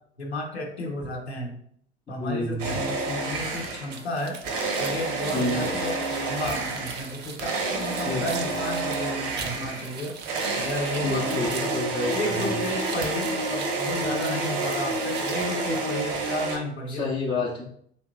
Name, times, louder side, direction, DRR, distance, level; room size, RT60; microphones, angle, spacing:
voice 1, 0.2-1.6 2.1-4.4 4.8-10.2 10.6-11.8 12.1-17.1, left 1 dB, 85° left, 1 dB, 0.8 m, -33 dB
voice 2, 2.2-2.8 5.3-5.7 8.1-8.2 10.9-12.6 16.9-17.6, left 2 dB, 15° left, -6 dB, 0.6 m, -29 dB
sound 1, 2.6-4.0 4.4-16.6, right 3 dB, 60° right, 0.9 m, -29 dB
sound 2, 3.9-15.4, right 6 dB, 35° right, 0.5 m, -42 dB
3.4 x 2.8 x 3.1 m, 0.66 s
figure-of-eight pair, 65°, 32 cm